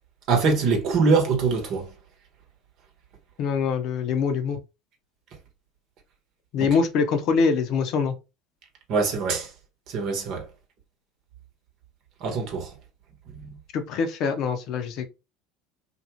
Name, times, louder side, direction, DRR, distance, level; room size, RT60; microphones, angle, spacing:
voice 1, 0.3-1.9 8.9-9.5 9.9-10.4 12.2-12.7, right 4 dB, 55° right, 1.0 m, -23 dB
voice 2, 3.4-4.6 6.5-8.1 13.7-15.1, left 5 dB, 55° left, 0.6 m, -24 dB
2.5 x 2.3 x 3.0 m
hypercardioid pair, 80°, 0 cm